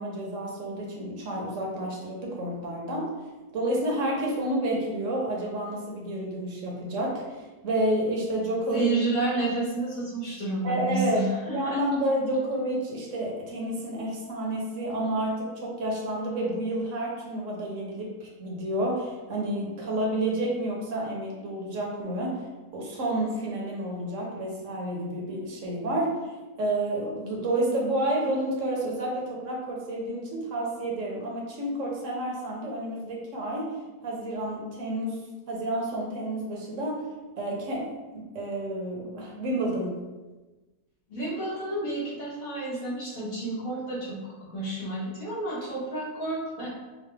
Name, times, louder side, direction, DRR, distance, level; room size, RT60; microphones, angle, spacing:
voice 1, 0.0-3.1 3.5-8.9 10.6-22.4 22.7-26.3 26.6-33.8 34.0-37.1 37.4-40.0, right 1 dB, 60° right, -2 dB, 1.2 m, -30 dB
voice 2, 8.7-11.8 41.1-46.7, right 2 dB, 65° left, -8 dB, 2.0 m, -30 dB
5.5 x 2.2 x 3.3 m, 1.2 s
omnidirectional pair, 1.6 m